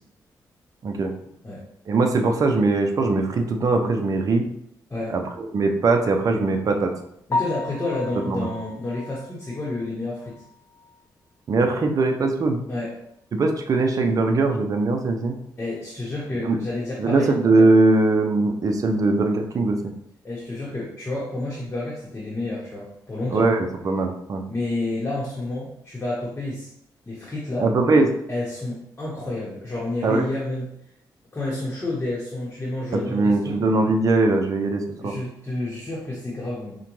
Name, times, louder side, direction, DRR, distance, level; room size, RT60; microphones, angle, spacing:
voice 1, 1.9-4.4 5.1-6.9 8.3-8.5 11.5-12.6 13.3-15.4 16.4-16.6 17.0-19.8 23.3-24.4 27.6-28.1 30.0-30.3 32.9-35.1, right 3 dB, 50° right, 3 dB, 0.5 m, -21 dB
Piano, 7.3-11.3 11.6-11.7 12.2-12.3 12.7-12.8 15.9-16.0 24.5-24.7, left 3 dB, 45° left, 0.5 m, -34 dB
voice 2, 7.3-10.4 12.7-12.9 15.6-17.4 20.2-23.5 24.5-26.7 27.1-27.7 28.3-30.7 31.3-33.6 35.0-36.8, left 2 dB, 25° left, -6 dB, 1.0 m, -30 dB
4.9 x 2.2 x 3.0 m, 0.74 s
cardioid pair, 90°, 8 cm